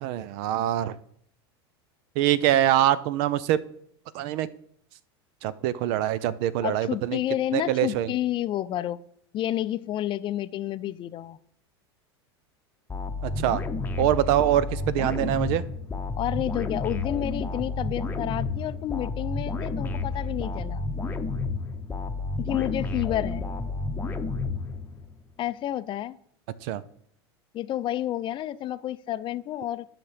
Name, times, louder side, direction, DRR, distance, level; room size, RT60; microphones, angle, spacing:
voice 1, 0.0-1.0 2.2-3.6 4.1-4.5 5.4-7.2 7.5-8.1 13.2-13.6 14.0-15.6 26.6-26.8, right 12 dB, 60° right, 17 dB, 0.6 m, -24 dB
voice 2, 6.6-9.0 9.3-11.4 16.2-20.8 22.4-23.5 25.4-26.2 27.5-29.9, left 12 dB, 35° left, 14 dB, 0.4 m, -30 dB
sound 1, 12.9-25.2, left 3 dB, 15° left, 0.9 m, -31 dB
12.0 x 5.8 x 3.4 m, 0.67 s
hypercardioid pair, 100°, 14 cm